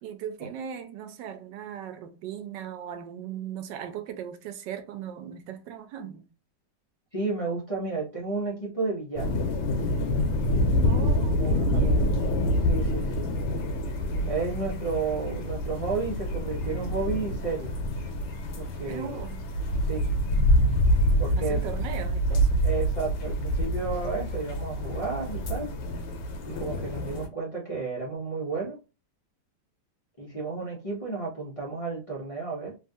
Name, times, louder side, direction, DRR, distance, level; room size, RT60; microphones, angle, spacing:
voice 1, 0.0-6.2 10.8-12.5 18.8-19.4 21.4-22.7, right 8 dB, 85° right, 1.3 m, -38 dB
voice 2, 7.1-9.3 11.4-12.1 12.6-13.3 14.3-17.8 18.6-19.1 19.8-20.1 21.2-21.8 22.6-25.8 26.4-28.8 30.2-32.8, right 4 dB, 35° left, 0.6 m, -32 dB
sound 1, 9.2-27.3, equal, 80° left, 1.3 m, -26 dB
3.2 x 2.3 x 2.6 m
omnidirectional pair, 1.9 m